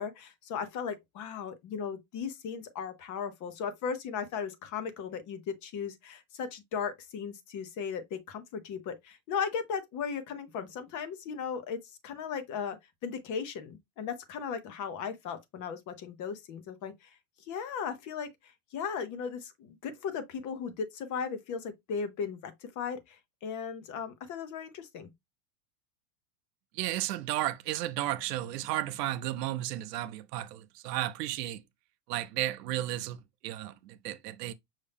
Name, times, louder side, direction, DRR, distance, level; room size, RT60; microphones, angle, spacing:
voice 1, 0.0-11.8 12.0-12.8 13.0-25.1, left 6 dB, 40° left, 1.0 m, -37 dB
voice 2, 26.7-31.6 32.1-33.2 33.4-34.5, right 14 dB, 85° right, 0.7 m, -33 dB
5.7 x 2.6 x 3.5 m
supercardioid pair, 130°, 47 cm